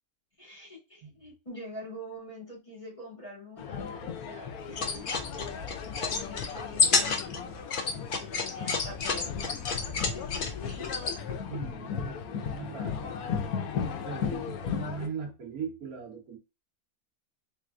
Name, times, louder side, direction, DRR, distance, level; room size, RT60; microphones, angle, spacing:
voice 1, 0.4-5.1 5.8-7.6 8.2-9.4 9.8-11.4 12.2-12.6 14.2-14.5, left 2 dB, 20° left, 2.0 m, -44 dB
sound 1, 3.6-15.1, left 7 dB, 90° left, 1.1 m, -36 dB
sound 2, 4.7-11.2, left 4 dB, 50° left, 0.7 m, -30 dB
voice 2, 11.5-13.1 13.7-16.4, right 6 dB, 80° right, 1.7 m, -39 dB
4.2 x 3.7 x 2.4 m
omnidirectional pair, 1.5 m